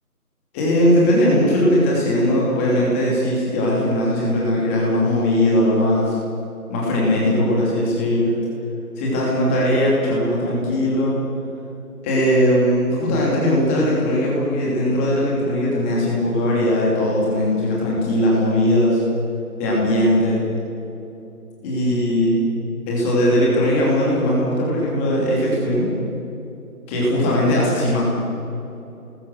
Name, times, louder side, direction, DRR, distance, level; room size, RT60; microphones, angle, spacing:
voice 1, 0.5-6.2 6.7-8.3 9.0-11.2 12.0-19.0 19.6-20.4 21.6-22.4 22.9-25.9 26.9-28.1, left 1 dB, 10° left, -4 dB, 2.9 m, -19 dB
28.0 x 20.0 x 6.5 m, 2.9 s
figure-of-eight pair, 160°, 45 cm